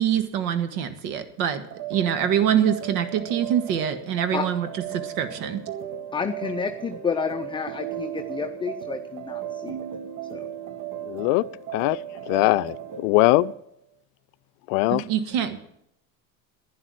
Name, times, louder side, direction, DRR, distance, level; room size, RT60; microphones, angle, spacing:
voice 1, 0.0-1.6 1.9-4.7 4.9-5.6 14.9-15.6, right 9 dB, 70° right, 1.7 m, -24 dB
sound 1, 1.7-13.6, right 10 dB, 40° right, 1.1 m, -36 dB
voice 2, 6.1-9.8 10.3-10.4, left 6 dB, 10° left, 0.6 m, -30 dB
voice 3, 11.1-11.4 11.7-12.0 12.3-13.5 14.7-15.0, left 22 dB, 60° left, 0.5 m, -21 dB
11.5 x 10.5 x 7.7 m
hypercardioid pair, 95°, 46 cm